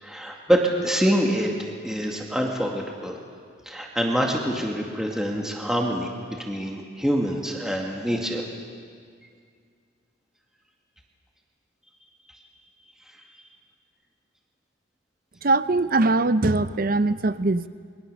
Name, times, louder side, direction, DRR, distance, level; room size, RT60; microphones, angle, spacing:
voice 1, 0.0-3.1 3.7-8.4, equal, 5° right, -1 dB, 2.1 m, -25 dB
voice 2, 15.4-17.7, right 2 dB, 45° right, 14 dB, 0.6 m, -21 dB
28.5 x 23.0 x 6.8 m, 2.1 s
head